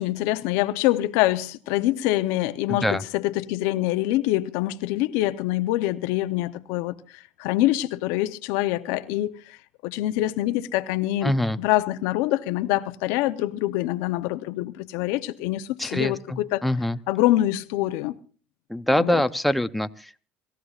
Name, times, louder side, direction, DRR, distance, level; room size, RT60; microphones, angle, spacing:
voice 1, 0.0-9.6 9.8-11.3 11.6-16.6 17.1-18.1 18.9-19.2, left 15 dB, 80° left, 0.7 m, -25 dB
voice 2, 2.7-3.0 11.2-11.6 15.8-17.0 18.7-20.2, left 1 dB, ahead, 0.6 m, -24 dB
28.0 x 14.5 x 2.4 m
supercardioid pair, 100°, 5 cm